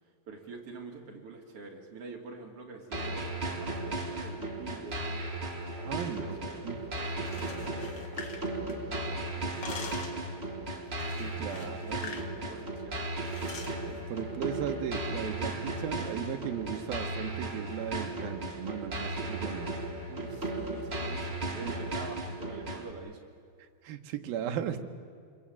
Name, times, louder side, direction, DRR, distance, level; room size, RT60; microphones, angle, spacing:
voice 1, 0.3-5.2 5.7-10.7 11.5-13.1 20.1-23.3, right 4 dB, 40° right, 0 dB, 3.4 m, -47 dB
sound 1, 2.9-22.9, right 2 dB, 20° right, 1.6 m, -36 dB
voice 2, 5.8-6.8 8.7-8.8 11.2-12.2 13.9-19.7 21.6-21.7 23.6-24.8, right 9 dB, 70° right, 6 dB, 2.9 m, -37 dB
sound 2, 7.1-9.0 9.3-10.2 11.0-12.3 12.6-12.8 13.2-13.8, left 4 dB, 50° left, 1.4 m, -44 dB
27.0 x 22.0 x 8.7 m, 2.2 s
omnidirectional pair, 4.6 m